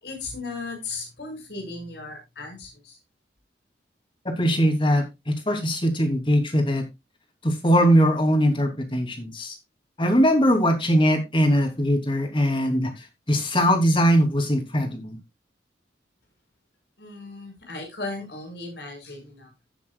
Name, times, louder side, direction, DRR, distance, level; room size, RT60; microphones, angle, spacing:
voice 1, 0.0-3.0 17.0-19.5, left 3 dB, 70° left, 2 dB, 5.9 m, -36 dB
voice 2, 4.4-6.8 7.4-9.6 10.0-15.2, equal, 30° left, 5 dB, 2.9 m, -21 dB
16.0 x 7.2 x 2.4 m, 0.22 s
head